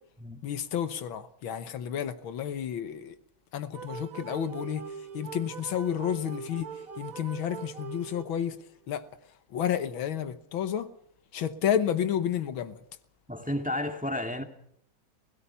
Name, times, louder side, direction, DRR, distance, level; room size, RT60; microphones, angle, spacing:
voice 1, 0.4-3.2 3.5-4.9 5.1-8.6 8.9-9.1 9.5-10.9 11.3-12.8, left 9 dB, 85° left, 1.9 m, -31 dB
sound 1, 3.7-8.6, right 6 dB, 50° right, 1.4 m, -42 dB
voice 2, 13.3-14.4, left 1 dB, 5° right, 2.0 m, -32 dB
29.5 x 17.0 x 5.7 m
omnidirectional pair, 2.2 m